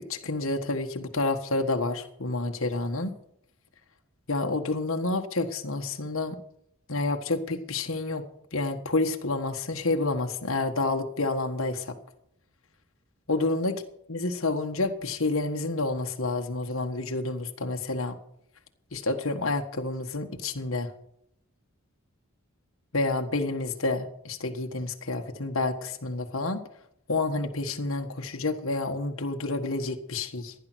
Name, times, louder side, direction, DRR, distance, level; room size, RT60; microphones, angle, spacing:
voice 1, 0.0-3.1 4.3-6.4 6.9-8.2 8.5-11.9 13.3-13.7 14.1-18.2 18.9-20.9 22.9-26.6 27.1-30.5, left 2 dB, 65° left, 5 dB, 1.6 m, -29 dB
15.5 x 11.0 x 6.3 m, 0.74 s
head